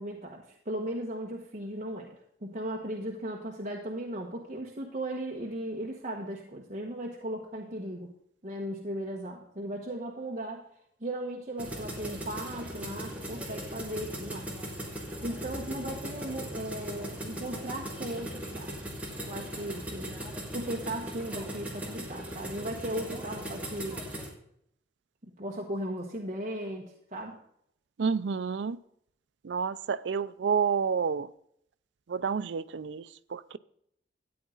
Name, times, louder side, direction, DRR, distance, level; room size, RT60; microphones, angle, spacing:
voice 1, 0.0-8.1 8.4-10.6 11.0-14.6 15.2-18.8 19.2-20.2 20.5-24.0 25.4-27.3, right 1 dB, 40° right, 1.3 m, -37 dB
sound 1, 11.6-24.3, equal, 10° right, 2.4 m, -39 dB
voice 2, 28.0-28.8 29.4-31.3 32.1-33.6, right 6 dB, 85° right, 0.5 m, -29 dB
13.5 x 9.3 x 3.9 m
head